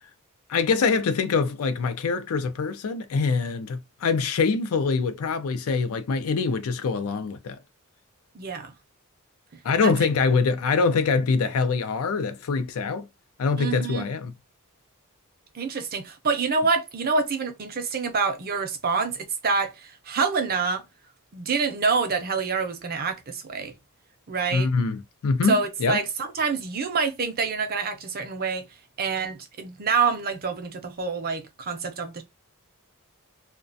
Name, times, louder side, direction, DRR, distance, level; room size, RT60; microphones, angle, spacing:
voice 1, 0.5-7.6 9.6-13.1 13.4-14.3 24.5-26.0, left 4 dB, 75° left, 0.4 m, -24 dB
voice 2, 8.3-8.8 9.5-10.1 13.6-14.1 15.5-20.8 21.3-23.8 24.3-24.7 25.5-28.6 29.0-32.2, right 5 dB, 45° right, 0.5 m, -27 dB
2.3 x 2.2 x 2.5 m
head